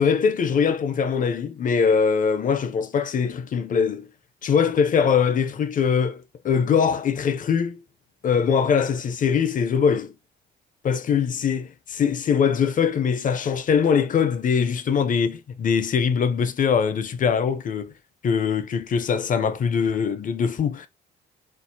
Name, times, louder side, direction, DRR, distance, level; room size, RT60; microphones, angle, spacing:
voice 1, 0.0-4.1 4.4-7.8 8.2-10.1 10.8-17.9 18.2-20.9, left 6 dB, 45° left, 0.5 m, -22 dB
4.4 x 2.0 x 2.6 m
cardioid pair, 90°, 20 cm